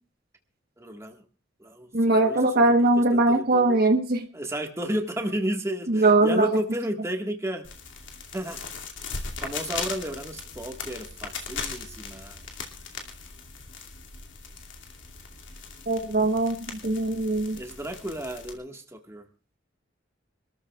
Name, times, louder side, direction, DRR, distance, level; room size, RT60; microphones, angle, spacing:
voice 1, 0.8-1.2 1.6-2.7 3.1-3.8 4.3-7.7 8.3-8.6 9.4-12.4 17.6-19.2, right 1 dB, 15° right, 2 dB, 1.7 m, -32 dB
voice 2, 1.9-4.3 5.9-6.5 15.9-17.6, right 2 dB, 55° right, 5 dB, 1.2 m, -21 dB
sound 1, 7.6-18.5, left 5 dB, 85° left, 2.6 m, -39 dB
26.0 x 13.5 x 2.4 m, 0.37 s
head